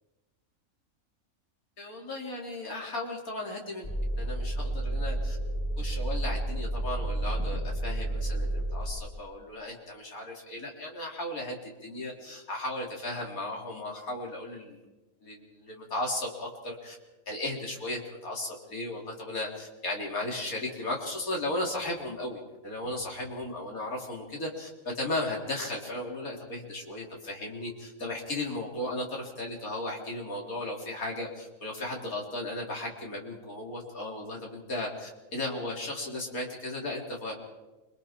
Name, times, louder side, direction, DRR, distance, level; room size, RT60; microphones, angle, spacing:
voice 1, 1.8-3.9 4.2-5.4 5.8-14.8 15.2-17.0 17.3-24.7 25.0-37.3, left 1 dB, 85° left, -1 dB, 4.1 m, -35 dB
sound 1, 3.8-8.9, right 1 dB, 25° left, 8.1 m, -31 dB
29.0 x 23.5 x 4.5 m, 1.1 s
omnidirectional pair, 1.5 m